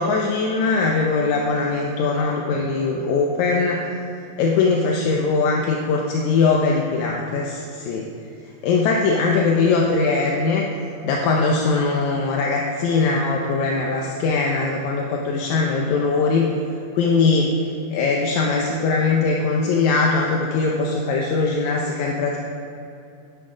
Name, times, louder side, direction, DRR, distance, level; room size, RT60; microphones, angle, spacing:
voice 1, 0.0-4.0 4.4-8.0 8.6-10.7 11.0-16.5 16.9-17.5 17.9-22.4, left 4 dB, 75° left, 0 dB, 1.9 m, -21 dB
9.9 x 9.8 x 5.0 m, 2.7 s
omnidirectional pair, 3.9 m